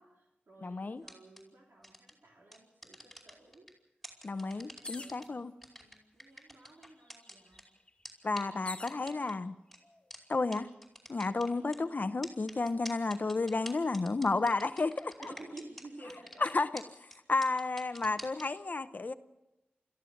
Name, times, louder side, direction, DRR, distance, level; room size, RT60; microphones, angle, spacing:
voice 1, 0.0-3.7 4.2-5.5 5.7-7.7 8.2-9.3 11.3-11.5 15.2-16.5, right 2 dB, 75° right, 3.3 m, -53 dB
voice 2, 0.6-1.0 4.2-5.5 8.2-9.5 10.3-10.7 11.1-15.1 16.4-19.1, left 3 dB, 55° left, 0.8 m, -32 dB
sound 1, 1.0-1.4 1.8-2.1 2.5-3.7 4.0-5.2 5.6-7.6 8.0-8.1 8.4-8.5 8.9-9.3 9.7-9.8 10.1-10.2 10.5-10.6 10.8-11.8 12.2-15.8 16.1-16.5 16.8-16.9 17.1-17.2 17.4-18.4, equal, ahead, 5.0 m, -46 dB
sound 2, 4.8-5.3 6.2-6.3 6.6-9.0 9.8-10.3, left 2 dB, 30° left, 2.0 m, -46 dB
29.5 x 14.5 x 6.5 m
wide cardioid pair, 75°, 4 cm